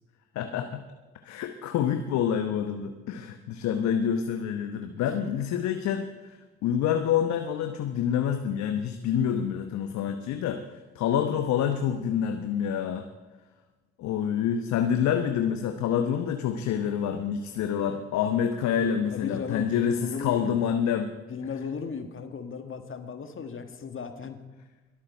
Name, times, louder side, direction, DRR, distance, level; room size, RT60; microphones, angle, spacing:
voice 1, 0.3-0.8 1.2-13.1 14.0-21.1, left 8 dB, 65° left, 6 dB, 1.0 m, -27 dB
voice 2, 19.1-20.6 21.3-24.4, left 5 dB, 40° left, 7 dB, 1.8 m, -36 dB
22.5 x 8.7 x 4.4 m, 1.2 s
hypercardioid pair, 50°, 31 cm